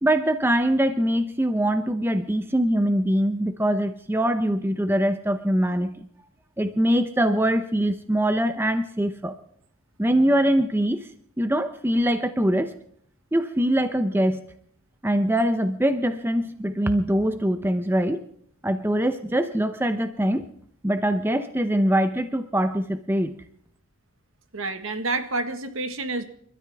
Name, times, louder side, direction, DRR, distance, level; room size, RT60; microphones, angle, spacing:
voice 1, 0.0-6.1 6.6-9.4 10.0-11.1 11.4-12.7 13.3-14.4 15.0-18.3 18.6-20.5 20.8-23.3, right 1 dB, 10° right, 9 dB, 0.7 m, -23 dB
voice 2, 24.5-26.2, right 3 dB, 70° right, 8 dB, 1.6 m, -28 dB
30.0 x 13.5 x 3.5 m, 0.64 s
head